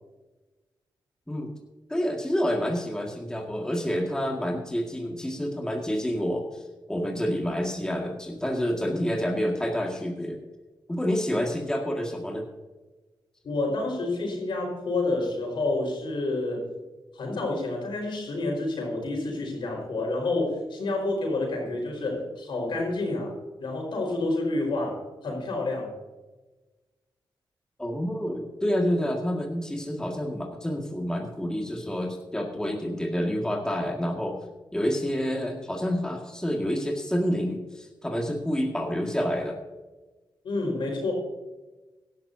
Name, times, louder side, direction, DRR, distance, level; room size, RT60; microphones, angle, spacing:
voice 1, 1.9-6.6 6.9-10.4 10.9-12.4 27.8-34.4 34.7-39.6, equal, 10° left, 0 dB, 2.0 m, -28 dB
voice 2, 13.4-16.6 17.1-23.3 23.6-25.9 40.4-41.1, left 2 dB, 75° left, 0 dB, 4.8 m, -29 dB
17.0 x 12.0 x 2.8 m, 1.2 s
cardioid pair, 75°, 8 cm